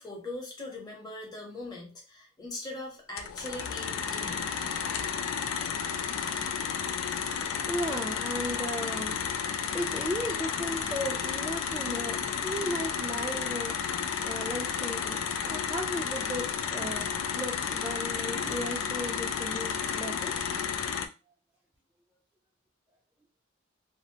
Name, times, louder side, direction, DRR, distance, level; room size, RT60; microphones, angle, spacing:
voice 1, 0.0-4.4, left 2 dB, 20° left, -1 dB, 0.8 m, -40 dB
sound 1, 3.2-21.1, left 7 dB, 80° left, 0.4 m, -32 dB
voice 2, 7.7-9.2 9.7-13.7 14.2-15.2 15.5-20.3, equal, 5° right, -3 dB, 0.3 m, -35 dB
2.6 x 2.0 x 2.8 m, 0.30 s
head